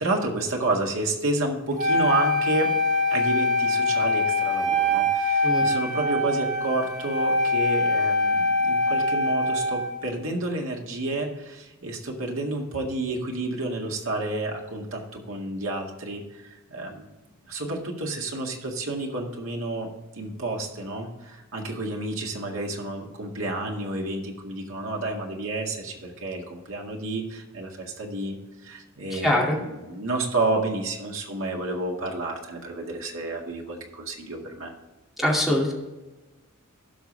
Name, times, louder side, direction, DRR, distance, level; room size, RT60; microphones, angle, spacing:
voice 1, 0.0-2.7 3.1-17.1 17.5-19.9 20.1-28.4 28.6-34.7, right 2 dB, 65° right, 1 dB, 2.0 m, -30 dB
Wind instrument woodwind instrument, 1.8-10.0, left 1 dB, 35° right, 1.5 m, -23 dB
voice 2, 29.1-29.6 35.2-35.7, left 1 dB, ahead, -2 dB, 2.4 m, -23 dB
16.0 x 5.9 x 3.4 m, 1.1 s
head